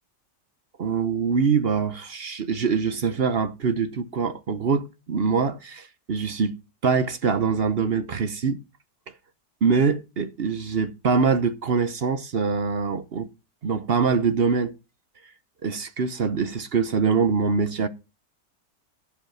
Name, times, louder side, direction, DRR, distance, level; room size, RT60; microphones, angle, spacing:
voice 1, 0.8-8.6 9.6-13.3 13.6-14.7 15.6-17.9, right 5 dB, 50° right, 0.8 m, -24 dB
15.0 x 5.5 x 5.7 m
omnidirectional pair, 1.8 m